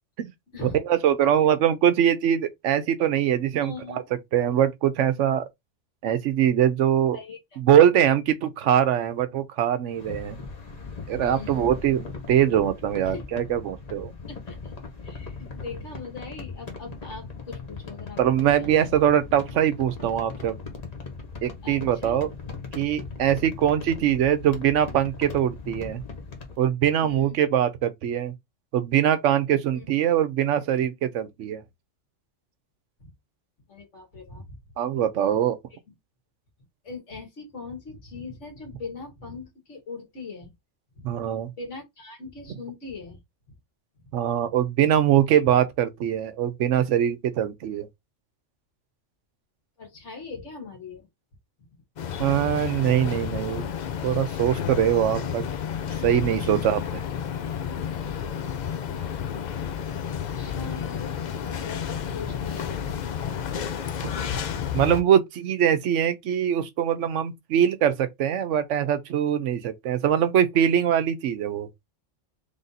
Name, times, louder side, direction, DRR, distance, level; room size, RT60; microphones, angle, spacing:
voice 1, 0.9-4.0 4.3-5.4 6.0-7.2 7.6-10.4 11.1-14.1 18.2-20.6 21.4-22.3 22.7-26.0 26.6-28.3 28.7-31.6 34.8-35.6 41.0-41.5 44.1-47.9 52.2-53.6 54.0-55.4 56.0-57.0 64.7-71.7, right 10 dB, 80° right, 1.0 m, -22 dB
voice 2, 3.6-4.0 7.1-7.4 11.2-11.8 13.0-13.3 14.3-14.7 15.0-18.9 21.6-22.2 27.0-27.3 29.7-29.9 33.0-33.1 33.7-34.6 36.8-40.5 41.0-41.3 41.6-43.2 49.8-51.0 56.4-56.6 60.4-62.7, left 4 dB, 75° left, 1.8 m, -40 dB
sound 1, 9.9-26.6, left 4 dB, 35° left, 1.0 m, -39 dB
sound 2, 52.0-65.0, left 8 dB, 55° left, 0.5 m, -31 dB
3.5 x 2.6 x 4.0 m
omnidirectional pair, 1.2 m